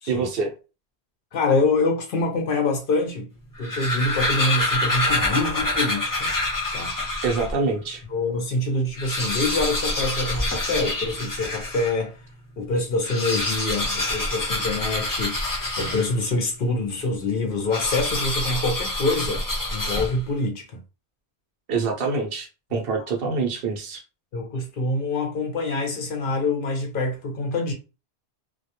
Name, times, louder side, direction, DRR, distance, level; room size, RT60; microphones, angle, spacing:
voice 1, 0.1-0.5 7.2-8.0 21.7-24.0, right 4 dB, 65° right, 0.8 m, -25 dB
voice 2, 1.3-3.3 3.6-6.3 6.7-6.9 8.1-12.1 12.6-19.4 19.7-20.6 24.3-27.7, left 2 dB, 60° left, 0.7 m, -25 dB
Siseo Hiss, 3.4-7.6 8.1-8.2 8.4-8.5 8.9-12.0 12.9-16.4 17.7-20.4, left 2 dB, 25° left, 0.5 m, -26 dB
2.2 x 2.1 x 2.8 m
omnidirectional pair, 1.1 m